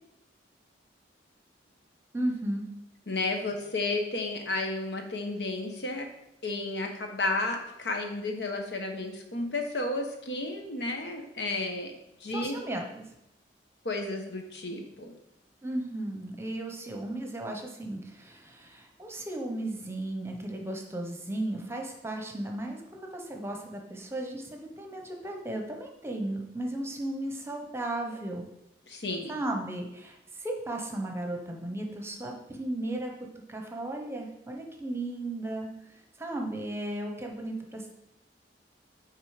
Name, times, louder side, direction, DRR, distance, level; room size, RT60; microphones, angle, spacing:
voice 1, 2.1-2.7 12.3-13.0 15.6-28.5 29.3-33.1 33.5-37.9, right 1 dB, 15° right, 2 dB, 0.9 m, -35 dB
voice 2, 3.1-6.1 6.4-11.9 12.2-12.6 13.8-15.1 28.9-29.3, left 2 dB, 70° left, 3 dB, 1.2 m, -32 dB
8.9 x 3.8 x 5.0 m, 0.85 s
head